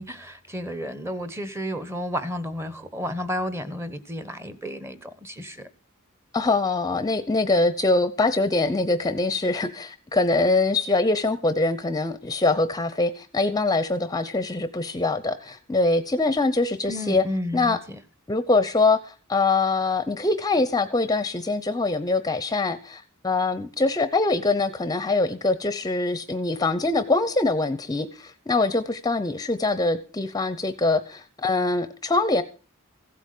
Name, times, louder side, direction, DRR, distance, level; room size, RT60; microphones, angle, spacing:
voice 1, 0.0-5.7 16.9-18.0, equal, 10° right, 1.1 m, -32 dB
voice 2, 6.3-17.2 17.5-17.8 18.3-32.4, left 3 dB, 15° left, 0.8 m, -23 dB
15.5 x 8.3 x 6.7 m
head